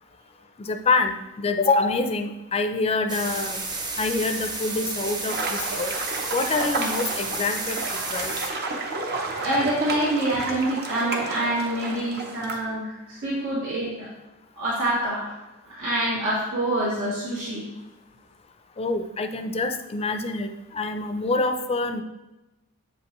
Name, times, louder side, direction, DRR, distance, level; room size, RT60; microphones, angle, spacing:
voice 1, 0.6-3.6 4.0-5.9 6.3-7.8 8.1-8.3 18.8-22.0, left 3 dB, 30° left, 7 dB, 0.4 m, -26 dB
sound 1, 3.1-8.5, right 3 dB, 20° right, 0.7 m, -31 dB
sound 2, 5.3-12.6, right 3 dB, 50° right, 0.8 m, -31 dB
voice 2, 9.0-14.1 14.6-15.4 15.7-17.6, right 1 dB, 80° right, -8 dB, 1.9 m, -26 dB
7.7 x 5.2 x 3.0 m, 1.0 s
head